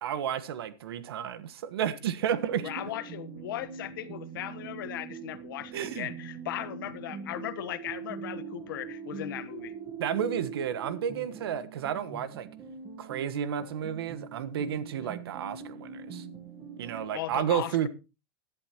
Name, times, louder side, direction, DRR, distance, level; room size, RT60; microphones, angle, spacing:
voice 1, 0.0-2.7 5.7-6.1 10.0-12.5 13.0-16.2 16.8-17.9, right 9 dB, 80° right, 1.4 m, -32 dB
sound 1, 2.5-17.1, right 6 dB, 20° right, 1.2 m, -43 dB
voice 2, 2.6-9.7 15.0-15.1 16.9-17.9, left 13 dB, 60° left, 1.2 m, -38 dB
17.0 x 11.0 x 3.0 m
supercardioid pair, 175°, 13 cm